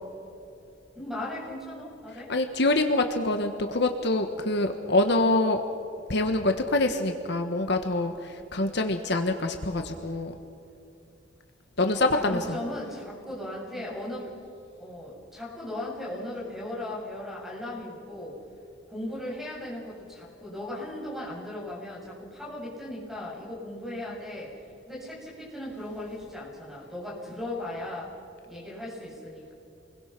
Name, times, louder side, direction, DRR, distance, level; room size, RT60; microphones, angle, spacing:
voice 1, 0.9-2.3 12.1-14.3 14.8-18.4 18.9-24.6 24.9-28.1 28.5-29.5, left 1 dB, ahead, -5 dB, 7.9 m, -37 dB
voice 2, 2.3-5.6 6.1-10.4 11.8-12.6, left 2 dB, 60° left, 6 dB, 1.4 m, -25 dB
28.5 x 22.0 x 6.1 m, 2.7 s
head